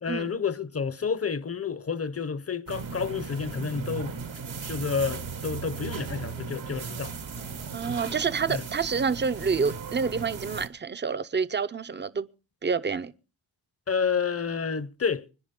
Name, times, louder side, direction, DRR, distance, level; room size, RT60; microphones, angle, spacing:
voice 1, 0.0-4.2 4.7-7.1 8.5-8.6 13.9-15.3, left 6 dB, 30° left, 0.8 m, -30 dB
sound 1, 2.7-10.7, right 6 dB, 70° right, 1.4 m, -37 dB
voice 2, 7.7-12.3 12.6-13.1, right 5 dB, 20° right, 0.6 m, -28 dB
25.0 x 10.5 x 3.7 m
wide cardioid pair, 90°, 49 cm